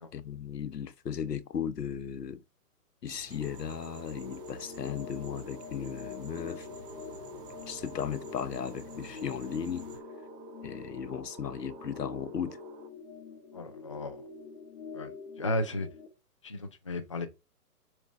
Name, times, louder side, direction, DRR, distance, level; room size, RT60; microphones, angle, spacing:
voice 1, 0.1-2.4 3.0-6.7 7.7-9.9 10.6-12.6, left 8 dB, 90° left, 1.1 m, -36 dB
sound 1, 3.1-10.0, right 2 dB, 10° right, 1.2 m, -52 dB
sound 2, 3.4-12.9, right 8 dB, 25° right, 2.1 m, -50 dB
sound 3, 4.2-16.1, left 6 dB, 45° left, 2.6 m, -46 dB
voice 2, 13.5-14.3 14.9-15.1 15.4-15.9 16.4-17.3, left 1 dB, 20° left, 0.4 m, -34 dB
7.1 x 3.8 x 6.2 m
hypercardioid pair, 155°, 47 cm